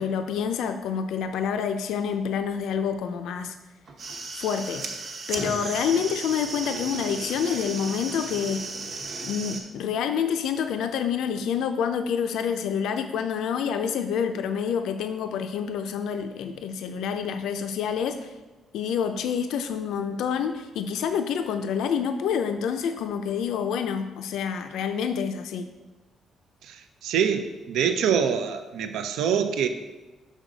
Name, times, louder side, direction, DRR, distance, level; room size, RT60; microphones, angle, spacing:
voice 1, 0.0-3.5 4.4-4.9 5.3-8.7 9.2-18.3 18.7-25.7, left 7 dB, 85° left, 8 dB, 0.4 m, -27 dB
sound 1, 3.9-9.6, right 3 dB, 45° right, 1.0 m, -35 dB
voice 2, 26.6-29.7, right 7 dB, 85° right, 8 dB, 0.5 m, -25 dB
6.3 x 6.3 x 4.0 m, 1.2 s
cardioid pair, 160°, 0 cm